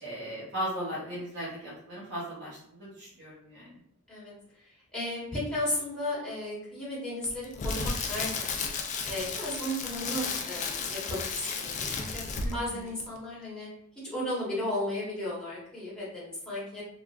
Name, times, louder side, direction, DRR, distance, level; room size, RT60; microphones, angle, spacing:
voice 1, 0.0-3.8 12.4-13.0, equal, 50° right, -7 dB, 0.9 m, -37 dB
voice 2, 4.9-8.5 9.1-12.2 12.5-13.7 14.1-16.8, left 1 dB, 5° left, -9 dB, 1.3 m, -34 dB
Crackle, 7.2-12.7 13.0-13.2, left 4 dB, 35° left, 0.3 m, -33 dB
3.2 x 2.4 x 2.4 m, 0.75 s
head